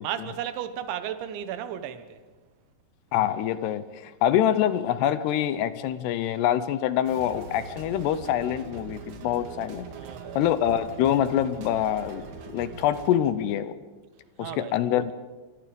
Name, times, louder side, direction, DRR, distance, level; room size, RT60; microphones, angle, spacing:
voice 1, 0.0-2.2 9.9-10.4 14.4-15.1, right 10 dB, 85° right, 3.5 m, -34 dB
voice 2, 3.1-9.9 10.4-13.7 14.4-15.1, left 10 dB, 75° left, 2.8 m, -25 dB
sound 1, 7.0-13.1, right 5 dB, 60° right, 3.5 m, -42 dB
28.5 x 24.5 x 5.2 m
omnidirectional pair, 5.2 m